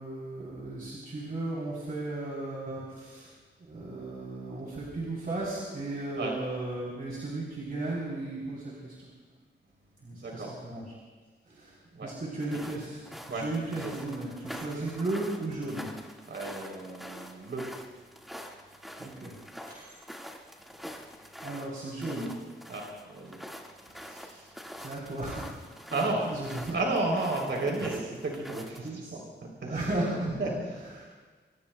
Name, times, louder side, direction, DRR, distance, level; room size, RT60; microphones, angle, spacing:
voice 1, 0.0-3.3 3.6-9.1 10.0-10.8 11.5-15.9 19.0-19.3 19.7-20.0 21.4-22.3 24.8-25.6 26.2-26.7 28.8-29.1 29.6-30.3 31.0-31.1, right 2 dB, 50° right, -5 dB, 3.5 m, -35 dB
voice 2, 10.1-10.5 11.9-12.1 12.5-12.6 13.3-13.9 16.3-17.6 22.7-23.4 23.9-24.5 25.9-26.3 26.7-29.9 30.4-30.5, right 2 dB, 90° right, -1 dB, 3.4 m, -33 dB
sound 1, 12.4-28.9, equal, ahead, 1.8 m, -45 dB
26.0 x 24.0 x 2.3 m, 1.4 s
wide cardioid pair, 120°, 19 cm